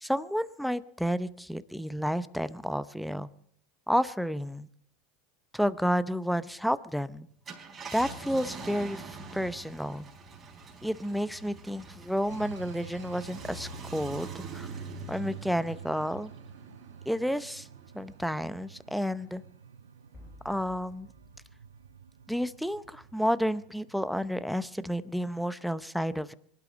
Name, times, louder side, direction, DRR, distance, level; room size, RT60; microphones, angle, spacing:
voice 1, 0.0-3.3 3.9-4.7 5.5-7.3 7.9-10.1 10.8-14.7 15.1-16.3 17.1-17.7 17.9-19.4 20.4-21.1 22.3-26.3, equal, ahead, 15 dB, 0.7 m, -31 dB
Car, 7.3-18.1 18.6-18.7 20.8-21.0, right 4 dB, 25° right, 4.7 m, -44 dB
sound 1, 12.3-25.6, right 7 dB, 85° right, 0.5 m, -50 dB
sound 2, 20.1-23.0, left 2 dB, 20° left, 1.6 m, -55 dB
25.0 x 12.0 x 3.9 m, 0.65 s
hypercardioid pair, 85°, 0 cm